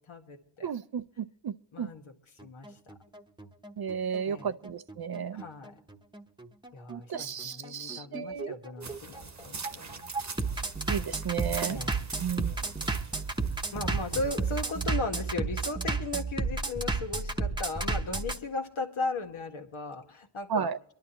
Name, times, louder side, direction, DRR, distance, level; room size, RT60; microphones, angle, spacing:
voice 1, 0.0-0.7 1.7-2.1 2.4-2.9 4.3-4.5 5.3-5.7 6.7-10.1 11.6-12.0 13.7-20.7, left 3 dB, 80° left, 1.9 m, -37 dB
voice 2, 0.6-1.9 3.8-5.4 6.9-8.6 10.9-11.8 12.2-12.6 20.5-20.8, right 7 dB, 50° right, 0.6 m, -33 dB
Bass drum, 2.4-18.4, right 3 dB, 10° right, 1.0 m, -32 dB
sound 1, 8.8-14.9, right 4 dB, 35° right, 1.1 m, -42 dB
24.0 x 11.5 x 3.0 m
wide cardioid pair, 90°, 48 cm